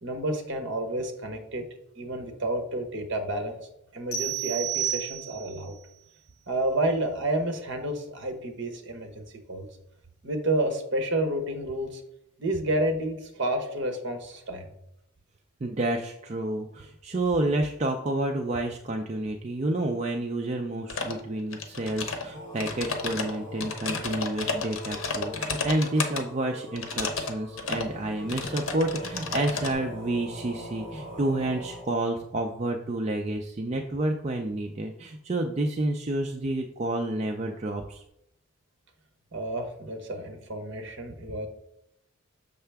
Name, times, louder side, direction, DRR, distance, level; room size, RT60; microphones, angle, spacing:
voice 1, 0.0-1.6 2.0-3.6 3.9-5.7 6.5-9.7 10.2-12.0 12.4-14.7 39.3-41.5, right 1 dB, 55° right, 5 dB, 1.1 m, -30 dB
sound 1, 4.1-5.6, right 10 dB, 50° left, 1.9 m, -31 dB
voice 2, 15.6-38.0, right 1 dB, 30° right, 2 dB, 0.4 m, -29 dB
sound 2, 20.9-21.2 21.5-22.2 22.6-26.2 26.8-27.3 27.6-27.9 28.3-29.7, left 4 dB, 70° left, 0.9 m, -32 dB
sound 3, 22.3-31.8, left 1 dB, 35° left, 2.3 m, -42 dB
6.7 x 5.6 x 3.4 m, 0.78 s
head